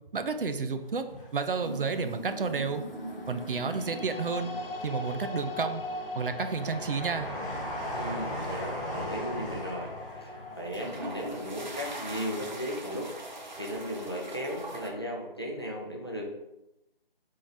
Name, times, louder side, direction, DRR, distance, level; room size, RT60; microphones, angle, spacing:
voice 1, 0.1-2.8 3.3-4.5 4.8-5.8 6.1-7.3, right 5 dB, 65° right, 8 dB, 0.5 m, -31 dB
Train, 0.9-2.2 2.6-3.6 4.1-12.9 13.1-13.2, equal, 5° right, 0.8 m, -40 dB
sound 1, 1.6-4.8 5.2-5.6 7.1-8.7 9.1-9.5 10.5-14.9, right 1 dB, 50° right, 0.8 m, -41 dB
sound 2, 2.3-14.5, left 2 dB, 70° left, 0.6 m, -42 dB
voice 2, 7.9-13.1 13.6-16.3, equal, 25° left, -1 dB, 0.5 m, -36 dB
4.7 x 3.7 x 2.6 m, 0.91 s
figure-of-eight pair, 170°, 29 cm